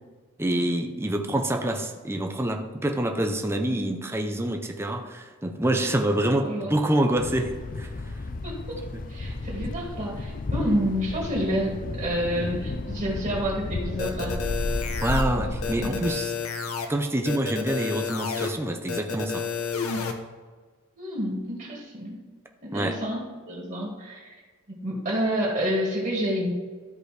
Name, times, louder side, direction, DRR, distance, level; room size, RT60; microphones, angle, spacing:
voice 1, 0.4-8.1 15.0-16.3 16.9-19.5 22.7-23.0, right 1 dB, 10° right, 4 dB, 0.6 m, -26 dB
voice 2, 6.4-6.8 8.4-8.8 9.1-14.4 15.4-15.5 15.8-16.0 21.0-22.2 22.6-24.4 24.7-26.5, equal, 40° right, -3 dB, 1.9 m, -29 dB
Thunder, 7.2-16.1, left 2 dB, 40° left, 0.5 m, -32 dB
sound 1, 14.0-15.2 15.6-16.9 17.2-18.5 18.9-20.1, left 5 dB, 85° left, 0.9 m, -30 dB
13.0 x 4.9 x 3.3 m, 1.5 s
head